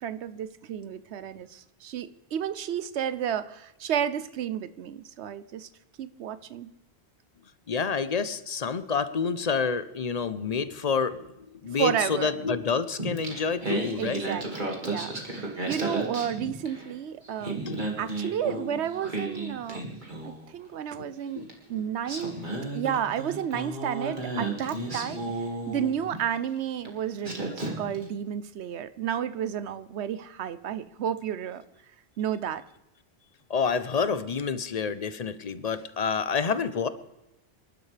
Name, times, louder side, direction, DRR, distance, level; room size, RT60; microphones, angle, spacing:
voice 1, 0.0-5.7 6.0-6.7 11.8-12.3 14.0-19.8 20.2-22.3 22.7-25.2 25.7-31.6 32.2-32.6, right 9 dB, 80° right, 14 dB, 1.0 m, -32 dB
voice 2, 7.7-14.2 17.7-17.9 21.0-21.9 33.5-36.9, left 5 dB, 40° left, 13 dB, 0.7 m, -28 dB
Singing, 13.0-16.9 17.2-20.5 21.5-21.6 22.0-26.2 26.8-27.0 27.2-28.0, right 2 dB, 45° right, 2.4 m, -33 dB
26.5 x 12.0 x 3.4 m, 0.93 s
omnidirectional pair, 1.1 m